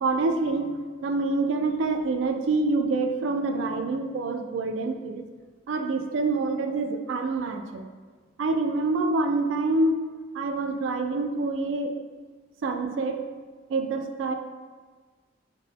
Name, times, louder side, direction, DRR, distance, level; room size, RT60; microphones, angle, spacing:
voice 1, 0.0-0.7 1.0-5.3 5.7-7.9 8.4-9.9 10.3-11.9 12.6-13.2 13.7-14.3, right 3 dB, 70° right, 6 dB, 0.3 m, -26 dB
3.6 x 2.1 x 3.7 m, 1.5 s
head